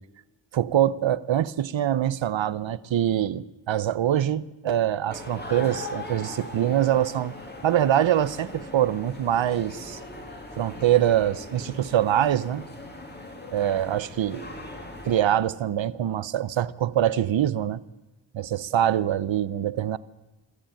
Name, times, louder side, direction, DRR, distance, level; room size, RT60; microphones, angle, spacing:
voice 1, 0.5-7.3 7.6-10.0 10.6-12.7 13.5-14.5 15.0-17.8 18.3-20.0, right 11 dB, 75° right, 0.8 m, -24 dB
sound 1, 5.1-15.2, left 2 dB, 20° left, 2.4 m, -39 dB
21.5 x 14.5 x 9.0 m
wide cardioid pair, 175°, 47 cm